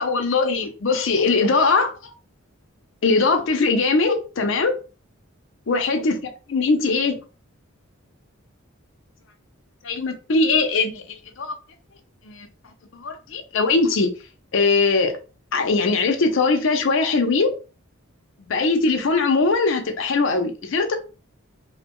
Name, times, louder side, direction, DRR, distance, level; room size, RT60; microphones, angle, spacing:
voice 1, 0.0-2.1 3.0-4.7 5.7-6.2 6.5-7.2 9.8-11.5 12.2-12.5 12.9-14.1 14.5-15.2 15.5-17.5 18.5-20.9, left 3 dB, 60° left, 0.5 m, -21 dB
2.6 x 2.1 x 2.9 m
head